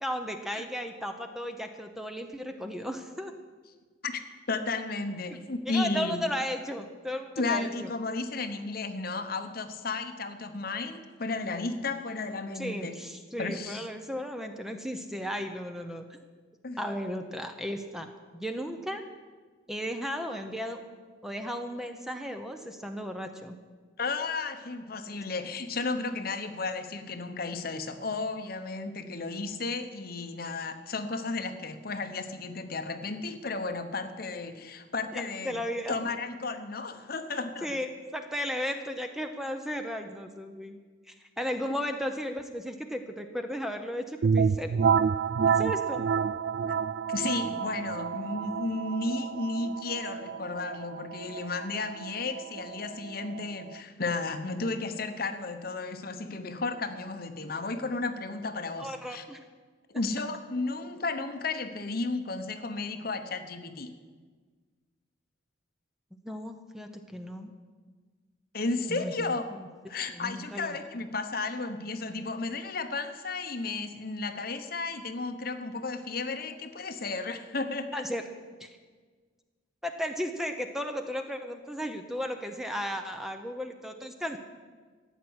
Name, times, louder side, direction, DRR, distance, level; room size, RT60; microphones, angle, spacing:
voice 1, 0.0-3.3 5.3-5.4 5.6-7.9 12.5-16.2 16.8-19.1 19.7-20.8 21.2-23.6 35.1-36.0 37.6-40.8 41.1-44.8 45.5-46.0 58.8-59.4 66.2-67.5 68.9-69.3 70.1-70.8 77.9-78.2 78.6-78.7 79.8-84.4, equal, ahead, 6 dB, 0.8 m, -35 dB
voice 2, 4.5-6.3 7.4-12.9 13.4-13.9 16.6-16.8 24.0-35.6 35.9-37.8 41.7-41.8 46.7-46.8 47.1-59.2 59.9-63.9 68.5-69.4 69.9-78.0, left 3 dB, 50° left, 8 dB, 1.0 m, -33 dB
sound 1, 44.2-53.8, right 6 dB, 60° right, 0.3 m, -29 dB
14.0 x 9.1 x 8.1 m, 1.5 s
head